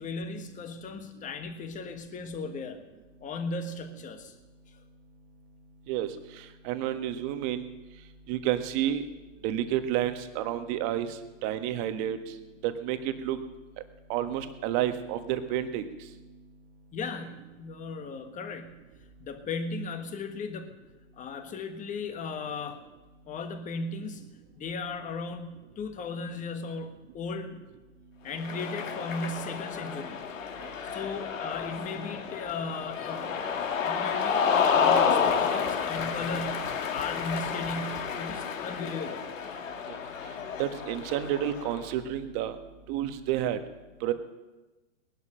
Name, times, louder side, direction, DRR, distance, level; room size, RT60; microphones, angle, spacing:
voice 1, 0.0-2.8 3.2-4.3 4.7-4.8 16.9-18.8 19.2-20.7 21.2-22.8 23.3-24.3 24.6-27.6 28.2-30.2 30.9-33.4 33.8-39.3, left 3 dB, 20° left, 7 dB, 1.5 m, -36 dB
voice 2, 6.6-7.7 8.3-9.0 9.4-11.1 11.4-12.2 12.6-13.4 14.1-15.8 39.9-40.0 40.6-42.5 42.9-43.6 44.0-44.1, right 11 dB, 40° right, 9 dB, 1.4 m, -30 dB
Cheering, 28.3-41.8, left 6 dB, 85° left, 1.9 m, -30 dB
18.5 x 11.5 x 6.4 m, 1.2 s
hypercardioid pair, 135°, 38 cm